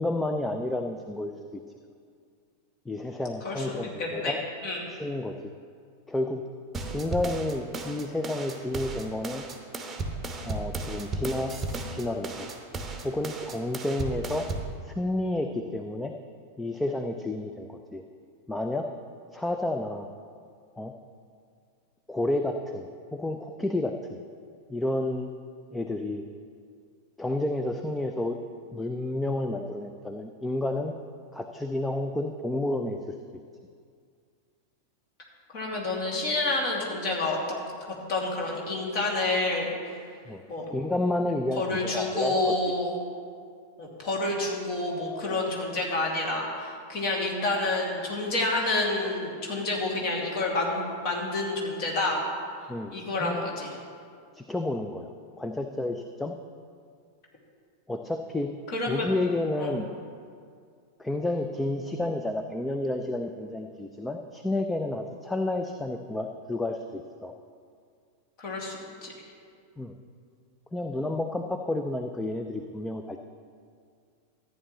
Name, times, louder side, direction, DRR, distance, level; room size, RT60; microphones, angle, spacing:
voice 1, 0.0-1.6 2.9-4.4 4.9-5.5 6.1-6.4 6.9-9.4 10.4-11.6 11.9-12.5 13.0-14.5 14.8-16.1 16.6-18.0 18.5-18.9 19.3-20.1 20.8-20.9 22.1-24.2 24.7-25.3 25.7-26.2 27.2-28.4 28.7-30.9 31.3-33.1 40.3-40.4 40.7-42.7 52.7-52.9 53.2-53.5 54.3-55.1 55.4-56.3 57.9-58.5 58.9-59.9 61.0-67.3 69.8-69.9 70.7-73.2, left 1 dB, 5° left, 5 dB, 0.4 m, -30 dB
voice 2, 3.4-4.3 4.6-4.8 35.5-37.4 38.1-40.0 40.5-40.6 41.6-42.9 43.8-52.2 52.9-53.7 58.7-59.0 59.6-59.8 68.4-69.1, left 2 dB, 40° left, -2 dB, 2.3 m, -29 dB
sound 1, 6.7-14.7, right 2 dB, 15° right, 1.0 m, -35 dB
14.0 x 9.1 x 3.1 m, 2.2 s
figure-of-eight pair, 90°, 0 cm